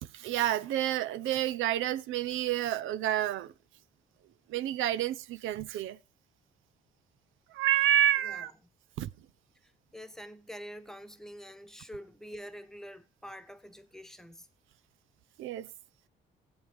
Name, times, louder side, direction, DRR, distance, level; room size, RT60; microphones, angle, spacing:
voice 1, 0.1-3.5 4.5-6.0 7.5-8.5 9.0-9.1 15.4-15.7, right 12 dB, 80° right, 0.6 m, -29 dB
voice 2, 9.6-14.5, equal, ahead, 1.1 m, -46 dB
20.0 x 8.0 x 3.4 m
cardioid pair, 90°, 20 cm